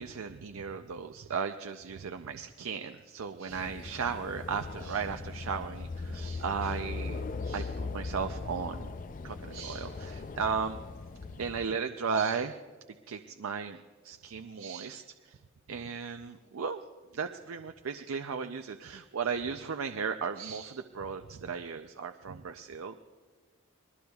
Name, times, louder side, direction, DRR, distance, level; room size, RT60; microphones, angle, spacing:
voice 1, 0.0-8.9 9.2-10.8 11.4-12.6 13.1-13.8 14.0-15.4 15.7-16.8 17.1-23.0, right 6 dB, 70° right, 7 dB, 0.5 m, -35 dB
sound 1, 3.5-11.7, left 3 dB, 35° left, 0.4 m, -39 dB
26.5 x 20.5 x 2.3 m, 1.5 s
head